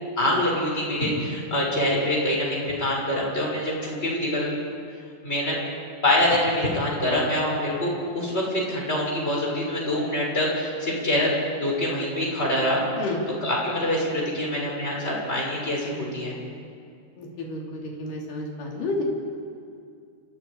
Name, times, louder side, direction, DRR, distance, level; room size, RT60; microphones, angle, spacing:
voice 1, 0.2-4.6 5.2-5.6 6.0-12.8 13.4-16.4, left 1 dB, 15° left, -3 dB, 6.7 m, -25 dB
voice 2, 17.2-19.0, left 2 dB, 55° left, -2 dB, 5.1 m, -31 dB
29.5 x 29.5 x 5.0 m, 2.3 s
omnidirectional pair, 4.7 m